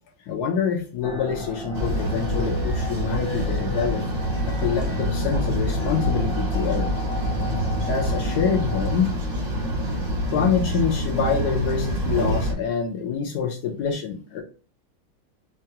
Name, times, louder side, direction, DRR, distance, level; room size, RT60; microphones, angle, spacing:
voice 1, 0.2-4.0 4.5-6.9 7.9-9.1 10.3-14.4, left 7 dB, 75° left, 2 dB, 0.9 m, -26 dB
sound 1, 1.0-9.0, left 1 dB, 45° left, 0.9 m, -35 dB
sound 2, 1.7-12.5, equal, 50° right, 0.5 m, -26 dB
4.6 x 2.3 x 2.8 m, 0.38 s
omnidirectional pair, 2.3 m